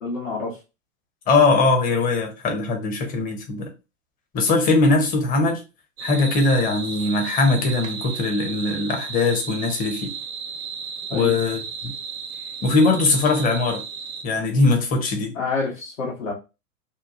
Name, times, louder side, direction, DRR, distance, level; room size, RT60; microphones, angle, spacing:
voice 1, 0.0-0.6 11.1-11.3 15.3-16.3, left 3 dB, 65° left, 1.1 m, -28 dB
voice 2, 1.3-3.7 4.3-5.6 6.0-10.1 11.1-11.9 12.6-13.8 14.2-15.3, left 3 dB, 20° left, 0.7 m, -20 dB
sound 1, 6.0-14.2, right 6 dB, 80° right, 0.7 m, -34 dB
2.8 x 2.2 x 2.5 m
hypercardioid pair, 105°, 41 cm